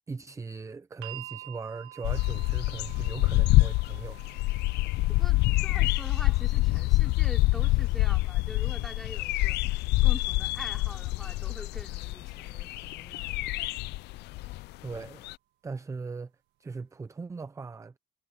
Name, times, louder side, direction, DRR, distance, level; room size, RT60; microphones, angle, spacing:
voice 1, 0.1-4.2 14.8-15.3 15.6-16.3 16.6-18.0, right 4 dB, 20° right, 0.6 m, -39 dB
sound 1, 1.0-13.1 14.2-14.3, right 16 dB, 85° right, 1.6 m, -51 dB
sound 2, 2.0-15.0 15.2-15.3, left 20 dB, 80° left, 0.4 m, -26 dB
voice 2, 5.1-13.7, equal, ahead, 3.1 m, -45 dB
cardioid pair, 110°, 17 cm